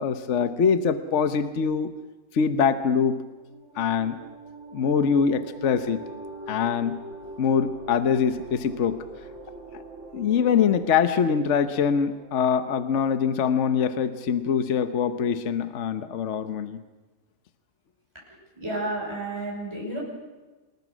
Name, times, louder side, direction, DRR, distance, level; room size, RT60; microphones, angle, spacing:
voice 1, 0.0-1.9 2.3-3.2 3.8-4.2 4.7-6.0 6.5-7.0 7.4-9.0 9.7-9.8 10.1-16.8, left 7 dB, 55° left, 10 dB, 1.2 m, -23 dB
sound 1, 3.3-13.5, right 2 dB, 50° right, 2.4 m, -43 dB
voice 2, 18.6-20.0, right 2 dB, 15° right, -3 dB, 6.1 m, -31 dB
27.0 x 20.5 x 6.2 m, 1.2 s
omnidirectional pair, 1.6 m